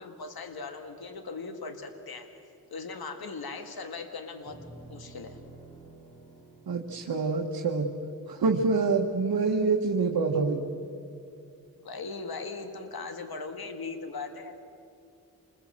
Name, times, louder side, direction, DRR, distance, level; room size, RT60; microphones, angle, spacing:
voice 1, 0.0-2.3 2.7-4.6 4.9-5.4 11.8-14.6, left 4 dB, 80° left, 7 dB, 1.8 m, -39 dB
sound 1, 4.5-8.9, right 2 dB, 15° left, 5.7 m, -51 dB
voice 2, 6.7-7.9 8.3-10.6, right 4 dB, 80° right, 1 dB, 1.5 m, -26 dB
27.5 x 21.5 x 7.5 m, 2.6 s
cardioid pair, 65°, 36 cm